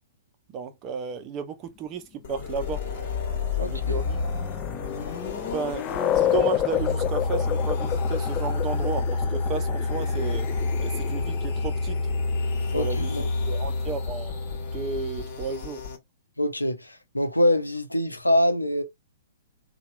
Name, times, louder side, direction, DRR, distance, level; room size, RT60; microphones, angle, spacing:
voice 1, 0.5-2.8 3.6-4.2 5.5-5.9 6.2-10.5 10.8-12.0 12.7-13.1 13.5-14.3 14.7-15.8, right 6 dB, 30° right, 0.7 m, -33 dB
sound 1, 2.2-16.0, left 3 dB, 45° left, 1.4 m, -29 dB
sound 2, 3.4-14.8, left 12 dB, 25° left, 0.4 m, -31 dB
voice 2, 3.6-4.0 12.7-13.2 16.4-18.8, left 1 dB, 90° left, 0.7 m, -24 dB
2.9 x 2.3 x 3.1 m
figure-of-eight pair, 115°, 0 cm